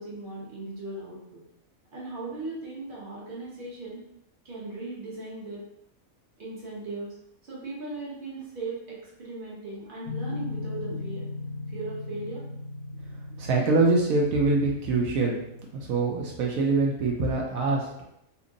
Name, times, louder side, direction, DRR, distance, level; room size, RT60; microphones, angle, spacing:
voice 1, 0.0-1.4 1.9-4.0 4.4-5.6 6.4-7.1 7.4-11.2 11.7-12.4, right 2 dB, 40° right, -6 dB, 1.2 m, -38 dB
sound 1, 10.1-15.6, left 2 dB, 55° left, 0.7 m, -37 dB
voice 2, 13.4-15.4 15.7-18.0, right 3 dB, 85° right, -1 dB, 1.1 m, -24 dB
2.8 x 2.5 x 3.7 m, 0.79 s
omnidirectional pair, 1.4 m